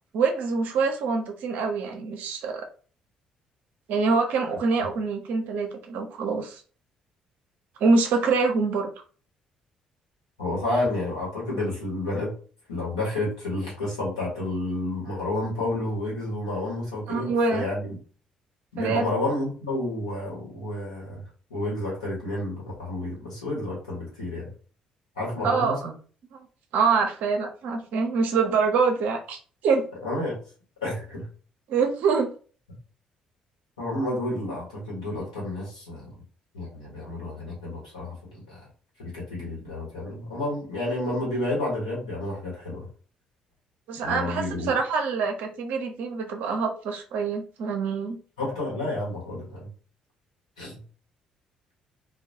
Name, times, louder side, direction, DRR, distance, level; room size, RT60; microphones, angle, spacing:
voice 1, 0.1-2.7 3.9-6.6 7.8-8.9 17.1-17.7 18.8-19.1 25.4-25.9 26.3-26.5 26.7-29.8 31.7-32.3 43.9-48.2, right 4 dB, 60° right, 4 dB, 0.5 m, -25 dB
voice 2, 10.4-12.3 12.7-17.9 18.7-21.2 21.5-24.5 25.2-25.9 30.0-30.3 30.8-31.2 33.8-36.1 36.5-38.6 39.0-42.8 44.0-44.7 48.4-49.7 50.6-50.8, left 2 dB, 85° left, -5 dB, 1.1 m, -30 dB
2.2 x 2.1 x 2.7 m, 0.40 s
figure-of-eight pair, 45°, 3 cm